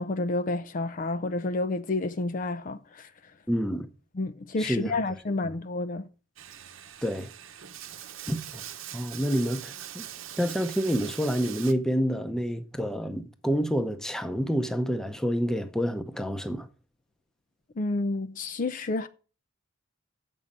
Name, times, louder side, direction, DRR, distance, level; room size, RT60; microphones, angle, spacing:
voice 1, 0.0-3.1 4.1-6.1 17.8-19.1, left 2 dB, 40° left, 0.5 m, -30 dB
voice 2, 3.5-3.9 4.6-4.9 7.0-7.3 8.3-8.6 8.9-10.0 10.4-16.7, equal, 5° left, 0.7 m, -28 dB
Bathtub (filling or washing), 6.4-11.7, right 10 dB, 70° right, 0.9 m, -42 dB
7.7 x 5.4 x 7.2 m
head